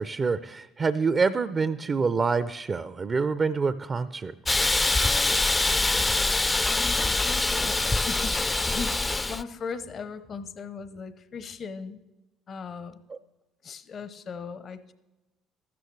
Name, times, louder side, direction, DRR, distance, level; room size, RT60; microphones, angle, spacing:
voice 1, 0.0-4.3, right 4 dB, 35° right, 13 dB, 0.5 m, -26 dB
Hiss, 4.5-9.4, left 2 dB, 20° left, 0.4 m, -24 dB
voice 2, 4.9-5.5 6.7-12.0 12.5-13.0 13.6-14.9, left 5 dB, 50° left, 12 dB, 0.8 m, -39 dB
14.0 x 13.0 x 3.3 m, 1.1 s
hypercardioid pair, 60°, 0 cm